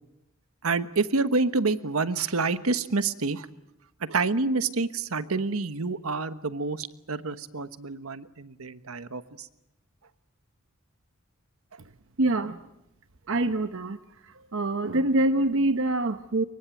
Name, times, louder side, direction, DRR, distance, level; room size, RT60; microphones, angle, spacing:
voice 1, 0.6-3.5 4.1-9.5, right 3 dB, 80° right, 12 dB, 1.3 m, -28 dB
voice 2, 12.2-12.6 13.3-14.0 14.5-16.4, right 2 dB, 65° right, 10 dB, 1.0 m, -25 dB
25.0 x 23.0 x 9.1 m, 0.87 s
head